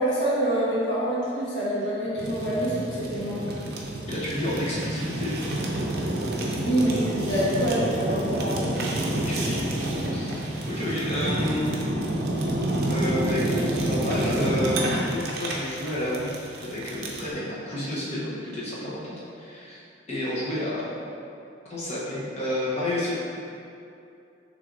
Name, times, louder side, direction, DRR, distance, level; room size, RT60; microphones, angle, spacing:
voice 1, 0.0-3.4 6.6-8.7, right 1 dB, 70° left, -7 dB, 1.1 m, -26 dB
Fire, 2.2-17.3, right 1 dB, 55° right, 0.6 m, -28 dB
voice 2, 4.1-5.4 9.1-9.7 10.1-11.7 12.8-20.9 21.7-23.1, left 1 dB, 35° left, -8 dB, 1.0 m, -30 dB
6.0 x 3.3 x 2.6 m, 2.6 s
head